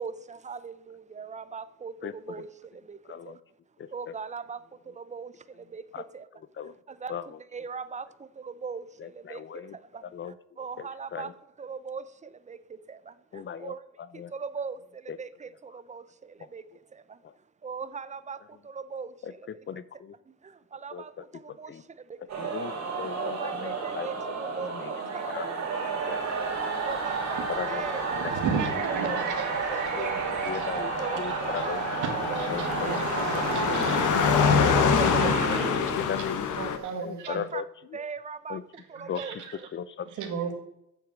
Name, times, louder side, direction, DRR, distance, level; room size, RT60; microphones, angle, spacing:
voice 1, 0.0-3.0 3.3-3.4 3.9-6.3 6.9-7.2 7.5-11.3 11.6-13.8 14.1-16.6 16.9-17.2 17.6-19.4 20.4-22.2 23.0-25.5 26.0-26.2 26.6-27.4 27.7-28.4 29.0-30.4 31.0-31.7 32.3-33.0 34.3-34.4 35.0-35.6 37.3-37.6 37.9-38.6 38.9-39.4, right 5 dB, 25° right, 0.6 m, -40 dB
voice 2, 2.0-2.5 3.1-3.4 3.8-4.2 5.9-6.0 6.3-6.7 7.1-7.4 9.0-9.8 10.0-10.4 10.8-11.3 13.3-14.3 15.1-15.2 15.7-15.8 17.2-17.3 19.2-20.1 20.9-21.8 22.4-24.1 24.6-24.9 25.3-25.7 26.1-26.5 27.5-27.8 28.2-28.4 30.0-31.8 32.5-33.0 33.3-33.4 33.7-33.8 34.6-35.2 35.5-36.8 37.0-38.0 38.5-38.6 39.1-39.4 39.7-40.1 40.3-40.4, left 8 dB, 40° left, 0.6 m, -38 dB
sound 1, 22.3-36.5, right 4 dB, 65° right, 3.1 m, -31 dB
Car passing by, 26.8-36.8, left 7 dB, 80° left, 1.1 m, -28 dB
voice 3, 28.1-30.8 31.3-31.7 32.0-33.9 35.5-35.8 36.6-37.5 38.9-39.5 40.1-40.5, right 6 dB, 80° right, 1.9 m, -35 dB
8.2 x 7.2 x 6.2 m
cardioid pair, 90°, 30 cm